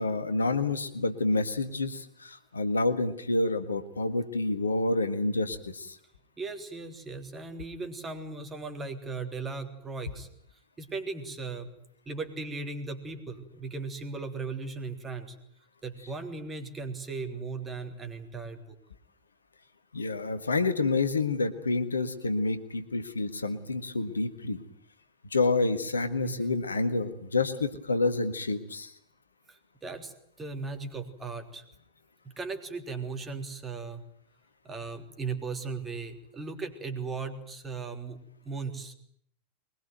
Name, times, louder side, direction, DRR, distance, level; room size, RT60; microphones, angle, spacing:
voice 1, 0.0-6.0 19.9-24.6 25.3-28.9, left 3 dB, 75° left, 10 dB, 1.7 m, -28 dB
voice 2, 6.4-10.3 10.8-11.7 12.1-15.4 15.8-18.8 26.2-26.6 29.5-31.6 32.2-34.0 34.6-38.9, right 4 dB, 15° right, 5 dB, 3.5 m, -37 dB
22.5 x 20.5 x 9.4 m, 0.69 s
figure-of-eight pair, 90°, 0 cm